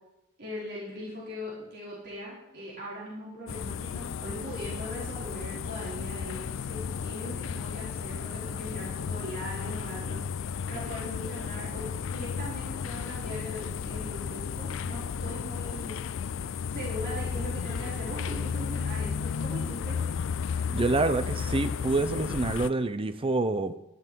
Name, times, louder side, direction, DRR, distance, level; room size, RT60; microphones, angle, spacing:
voice 1, 0.4-10.2 10.7-16.0 16.7-20.0, equal, 50° right, -7 dB, 4.4 m, -40 dB
sound 1, 3.5-22.7, left 6 dB, 65° left, 0.4 m, -33 dB
voice 2, 20.7-23.7, right 3 dB, 25° right, 12 dB, 0.6 m, -27 dB
12.0 x 11.0 x 4.6 m, 0.91 s
head